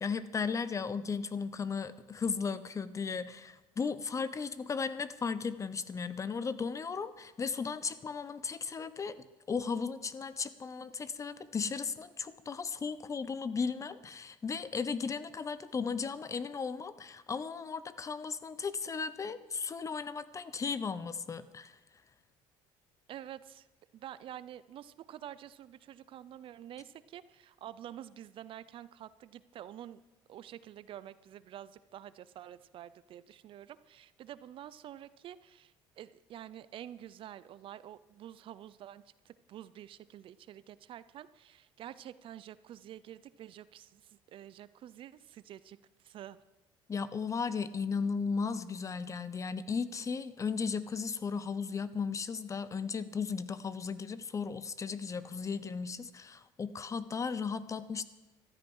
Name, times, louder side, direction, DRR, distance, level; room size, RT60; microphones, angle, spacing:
voice 1, 0.0-9.2 9.5-21.8 46.9-58.0, left 5 dB, 30° left, 15 dB, 0.9 m, -36 dB
voice 2, 23.1-23.7 23.9-30.0 30.3-46.4, right 11 dB, 55° right, 16 dB, 0.6 m, -48 dB
14.0 x 13.0 x 5.5 m, 1.1 s
supercardioid pair, 95°, 11 cm